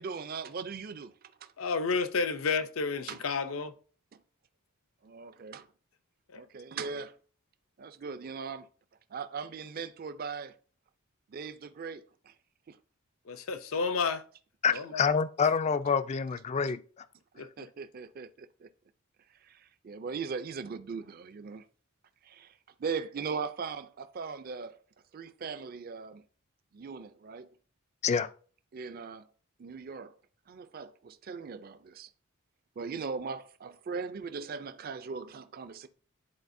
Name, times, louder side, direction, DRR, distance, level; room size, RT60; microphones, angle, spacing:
voice 1, 0.0-1.5 3.1-3.2 5.0-5.7 6.4-7.2 7.8-8.7 9.1-10.6 11.3-12.3 12.7-12.8 14.7-14.8 17.3-18.7 19.4-21.6 22.2-24.8 25.1-26.2 26.7-27.5 28.7-29.3 29.6-30.2 30.5-32.1 32.8-35.9, right 5 dB, 45° right, 0.4 m, -39 dB
voice 2, 1.6-3.7 6.3-6.4 13.3-14.2 14.7-15.0 17.4-17.7, left 4 dB, 75° left, 0.6 m, -31 dB
voice 3, 14.6-16.8 28.0-28.3, left 6 dB, 30° left, 0.3 m, -27 dB
10.5 x 4.1 x 2.6 m
head